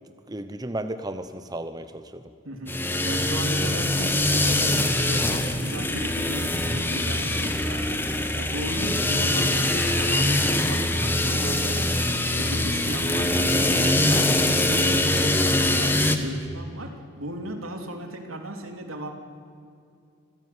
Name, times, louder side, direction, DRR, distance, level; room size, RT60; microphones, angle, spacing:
voice 1, 0.3-2.2 6.6-6.8 7.5-7.7, right 1 dB, 20° right, 9 dB, 0.8 m, -34 dB
voice 2, 2.4-2.8 3.0-12.1 12.4-19.1, right 1 dB, 80° right, 4 dB, 3.4 m, -36 dB
sound 1, 2.7-16.2, left 1 dB, 10° left, 1.4 m, -23 dB
26.5 x 16.5 x 9.7 m, 2.4 s
head